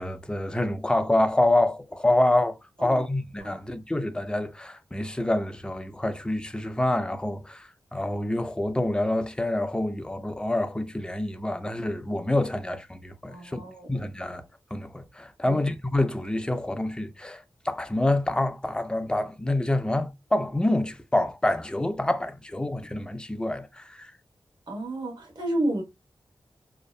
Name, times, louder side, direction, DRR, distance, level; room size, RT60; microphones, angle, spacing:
voice 1, 0.0-13.6 13.9-14.4 14.7-24.1, left 1 dB, 10° left, 0.4 m, -27 dB
voice 2, 13.3-13.9 15.4-15.6 24.7-25.8, right 1 dB, 65° right, 1.1 m, -31 dB
2.7 x 2.1 x 2.3 m
cardioid pair, 75°, 8 cm